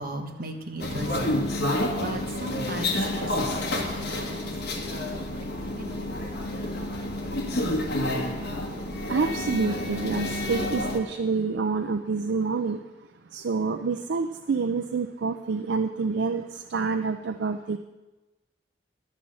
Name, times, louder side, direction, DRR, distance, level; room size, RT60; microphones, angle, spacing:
voice 1, 0.0-1.4 1.7-5.5 5.8-6.2, right 1 dB, 55° right, 3 dB, 1.3 m, -38 dB
sound 1, 0.8-11.0, left 1 dB, 60° left, 1.5 m, -29 dB
voice 2, 9.1-12.8 13.3-16.4 16.7-17.8, right 4 dB, 70° right, 8 dB, 0.4 m, -27 dB
11.5 x 5.5 x 7.5 m, 1.1 s
head